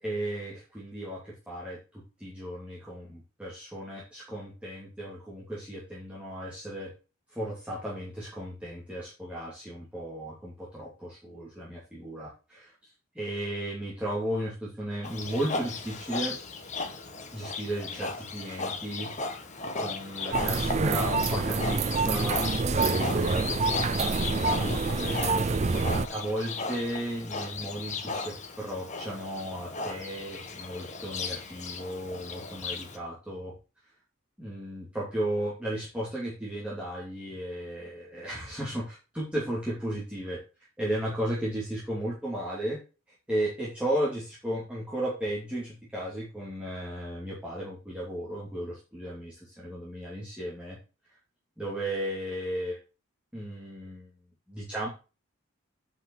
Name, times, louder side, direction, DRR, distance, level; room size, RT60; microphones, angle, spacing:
voice 1, 0.0-6.9 7.3-12.7 13.1-16.4 17.3-19.1 19.7-22.5 23.2-24.6 25.0-25.5 26.1-33.5 34.4-40.4 40.8-42.8 43.3-50.8 51.6-52.8 53.3-54.1 54.5-54.9, right 1 dB, 5° right, -7 dB, 2.7 m, -35 dB
Livestock farm animals working animals, 15.0-33.0, left 3 dB, 35° left, 1.4 m, -36 dB
sound 1, 20.3-26.1, right 4 dB, 30° right, 0.5 m, -27 dB
7.8 x 5.8 x 7.0 m, 0.32 s
head